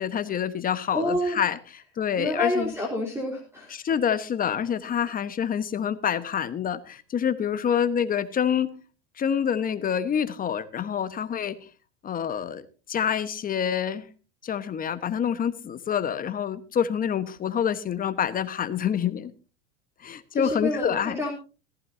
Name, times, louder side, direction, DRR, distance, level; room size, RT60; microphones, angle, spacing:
voice 1, 0.0-2.7 3.7-8.8 9.2-11.6 12.0-14.1 14.4-19.3 20.0-21.2, left 8 dB, 25° left, 1.2 m, -27 dB
voice 2, 0.9-1.4 2.2-3.7 20.3-21.3, left 1 dB, 5° right, 3.5 m, -28 dB
17.5 x 15.0 x 2.7 m
supercardioid pair, 120°, 35 cm